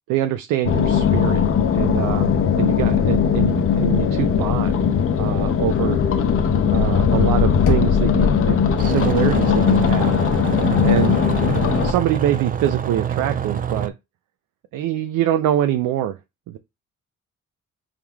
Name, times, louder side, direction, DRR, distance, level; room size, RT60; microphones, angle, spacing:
voice 1, 0.1-1.4 1.7-2.3 2.5-4.8 5.2-6.0 6.7-10.2 10.8-11.2 11.8-13.9 14.7-16.2 16.5-16.6, right 11 dB, 90° right, 0.5 m, -24 dB
sound 1, 0.6-11.9, left 7 dB, 45° left, 0.7 m, -19 dB
Knock, 7.7-8.6, left 4 dB, 85° left, 1.0 m, -26 dB
sound 2, 8.8-13.9, right 8 dB, 30° right, 0.4 m, -26 dB
4.7 x 3.6 x 2.3 m
cardioid pair, 90°, 30 cm